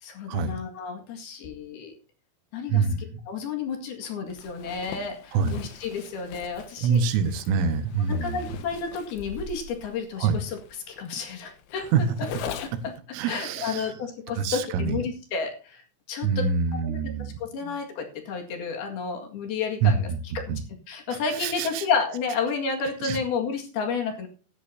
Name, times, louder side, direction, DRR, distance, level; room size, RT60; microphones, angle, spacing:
voice 1, 0.0-2.0 2.5-2.9 3.3-7.0 8.1-10.6 10.9-11.9 12.4-12.5 12.8-12.9 13.3-16.5 16.8-17.0 17.4-20.1 20.4-20.6 20.9-24.3, left 5 dB, 60° left, 3 dB, 3.5 m, -31 dB
voice 2, 2.7-3.0 5.3-5.6 6.8-8.5 10.2-10.4 11.9-12.0 13.1-13.9 14.4-15.0 16.2-17.8 19.8-20.6 21.1-21.9 23.0-23.2, right 6 dB, 90° right, 9 dB, 3.8 m, -26 dB
Zipper (clothing), 4.3-13.0, left 8 dB, 90° left, 3.7 m, -42 dB
16.5 x 10.5 x 2.8 m, 0.36 s
omnidirectional pair, 5.4 m